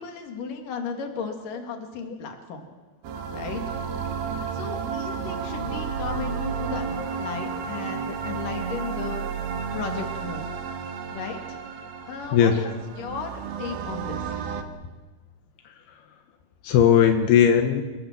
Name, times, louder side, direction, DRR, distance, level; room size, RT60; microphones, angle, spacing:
voice 1, 0.0-2.7 3.3-3.6 4.5-6.9 7.1-9.3 9.7-10.4 11.1-11.4 12.1-12.7 13.0-14.2, left 5 dB, 60° left, 4 dB, 4.0 m, -35 dB
sound 1, 3.0-14.6, right 6 dB, 75° right, 3.5 m, -32 dB
voice 2, 12.3-12.8 15.7-15.8 16.6-17.8, left 8 dB, 85° left, 5 dB, 3.3 m, -18 dB
29.5 x 16.0 x 7.6 m, 1.2 s
omnidirectional pair, 4.4 m